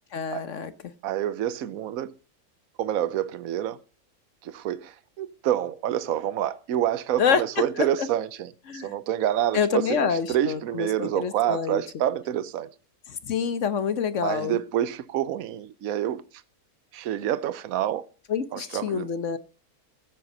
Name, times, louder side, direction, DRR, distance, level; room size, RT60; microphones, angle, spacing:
voice 1, 0.1-0.7 7.2-8.1 8.7-8.9 9.5-11.8 13.1-14.6 18.3-19.4, left 6 dB, 60° left, 1.2 m, -27 dB
voice 2, 1.0-2.1 2.8-3.8 4.4-12.7 14.2-16.2 16.9-18.1 18.5-19.1, right 11 dB, 70° right, 1.2 m, -27 dB
15.0 x 7.7 x 5.4 m
omnidirectional pair, 1.5 m